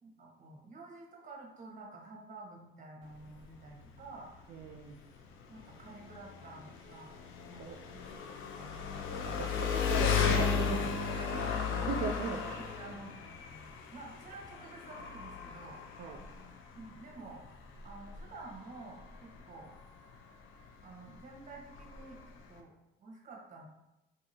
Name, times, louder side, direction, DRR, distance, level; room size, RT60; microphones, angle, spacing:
voice 1, 0.0-4.3 5.5-7.1 7.5-9.5 11.0-13.1 13.9-15.8 16.7-17.4 17.8-19.8 20.8-22.7 23.0-23.7, right 3 dB, 40° right, -1 dB, 1.0 m, -50 dB
Engine, 3.0-22.6, left 6 dB, 85° left, 0.4 m, -36 dB
voice 2, 4.5-5.0 7.6-7.8 9.4-11.1 11.7-12.4 16.0-16.2, right 5 dB, 70° right, 1 dB, 0.4 m, -38 dB
3.8 x 2.7 x 2.7 m, 0.92 s
cardioid pair, 90°, 20 cm